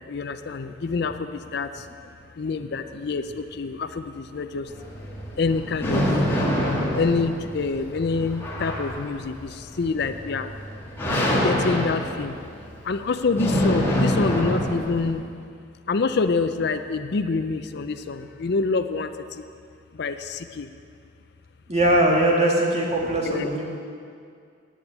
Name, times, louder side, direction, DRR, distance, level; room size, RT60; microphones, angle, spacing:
voice 1, 0.1-1.7 2.4-4.7 5.4-6.0 6.9-10.5 11.4-12.4 12.8-15.2 15.9-19.1 19.4-19.5 20.0-20.7 23.2-23.5, left 4 dB, 55° left, 9 dB, 0.5 m, -26 dB
sound 1, 4.7-15.1, equal, 10° left, 1.9 m, -26 dB
voice 2, 21.7-23.6, right 1 dB, 35° right, -2 dB, 2.0 m, -20 dB
9.9 x 8.9 x 8.1 m, 2.3 s
head